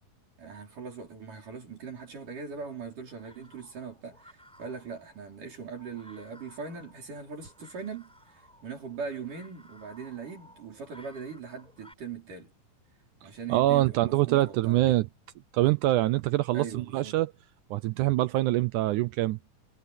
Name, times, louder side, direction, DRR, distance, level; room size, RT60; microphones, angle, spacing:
voice 1, 0.4-12.5 13.2-15.0 16.5-17.2, right 5 dB, 60° right, 6.4 m, -40 dB
sound 1, 2.1-11.9, equal, ahead, 5.4 m, -58 dB
voice 2, 13.2-15.1 15.5-17.3 17.7-19.4, right 16 dB, 80° right, 1.8 m, -25 dB
omnidirectional pair, 4.1 m